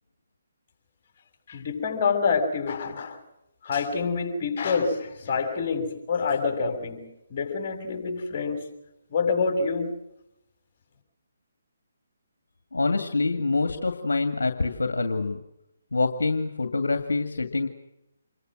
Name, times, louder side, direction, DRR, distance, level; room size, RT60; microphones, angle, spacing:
voice 1, 1.5-3.2 3.6-7.0 7.3-8.7 9.1-9.9, left 5 dB, 40° left, 5 dB, 7.0 m, -27 dB
voice 2, 12.7-15.4 15.9-17.7, left 3 dB, 75° left, 7 dB, 2.2 m, -26 dB
28.0 x 23.0 x 6.3 m, 0.85 s
figure-of-eight pair, 145°, 0 cm